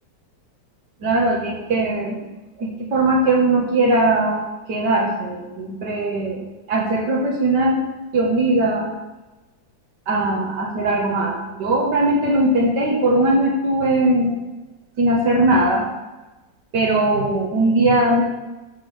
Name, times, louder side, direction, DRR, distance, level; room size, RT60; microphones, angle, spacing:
voice 1, 1.0-2.2 2.6-7.8 8.1-8.9 10.1-14.3 15.0-15.9 16.7-18.2, right 2 dB, 75° right, -2 dB, 2.1 m, -19 dB
13.5 x 6.1 x 3.4 m, 1.1 s
omnidirectional pair, 1.9 m